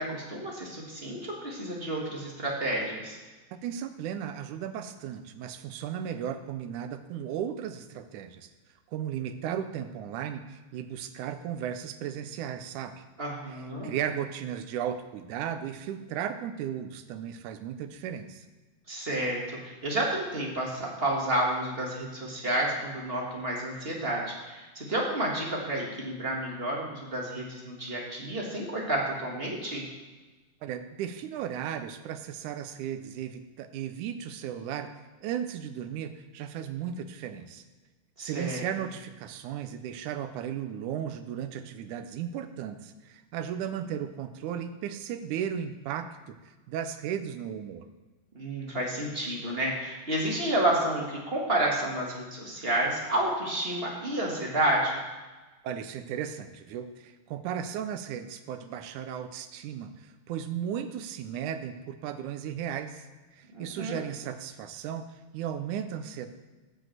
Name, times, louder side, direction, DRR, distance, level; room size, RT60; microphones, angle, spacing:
voice 1, 0.0-3.2 13.2-13.9 18.9-29.8 38.2-38.6 48.3-55.0 63.5-64.0, right 1 dB, 30° right, -3 dB, 1.1 m, -30 dB
voice 2, 3.6-8.5 8.9-13.0 13.5-18.5 30.6-34.9 35.2-37.6 38.2-47.9 55.6-63.1 63.3-65.1 65.3-66.3, right 9 dB, 80° right, 9 dB, 2.1 m, -35 dB
9.9 x 4.9 x 7.7 m, 1.2 s
omnidirectional pair, 3.6 m